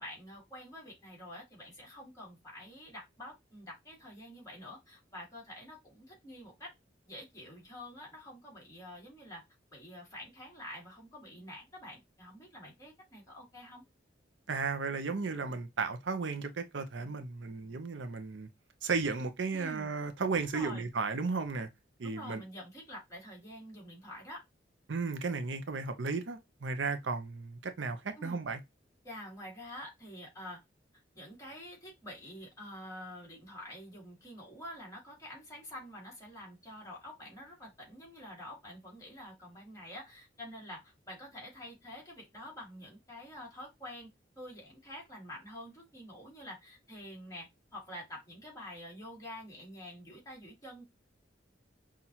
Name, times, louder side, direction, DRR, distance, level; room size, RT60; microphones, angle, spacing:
voice 1, 0.0-6.7 7.1-9.4 9.7-13.8 19.5-19.9 20.4-20.8 22.0-24.4 28.2-28.4 29.0-30.6 31.2-44.1 44.4-50.8, left 1 dB, 20° left, 2.0 m, -47 dB
voice 2, 14.5-18.5 18.8-21.7 22.0-22.4 24.9-28.6, right 4 dB, 85° right, 0.7 m, -34 dB
5.7 x 2.5 x 2.8 m
head